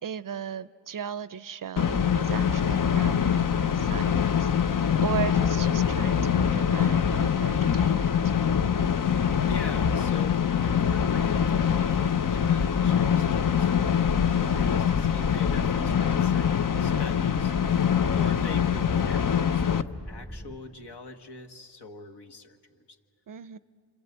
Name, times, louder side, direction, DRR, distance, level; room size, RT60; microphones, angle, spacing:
voice 1, 0.0-8.3 23.3-23.6, right 8 dB, 45° right, 16 dB, 0.6 m, -37 dB
sound 1, 1.8-19.8, left 8 dB, 45° left, 0.8 m, -24 dB
sound 2, 2.5-20.6, equal, 15° left, 1.1 m, -43 dB
voice 2, 9.4-14.1 14.5-17.5 18.1-22.8, left 3 dB, 60° left, 5 dB, 1.8 m, -43 dB
27.5 x 26.0 x 8.1 m, 2.5 s
cardioid pair, 60°, 45 cm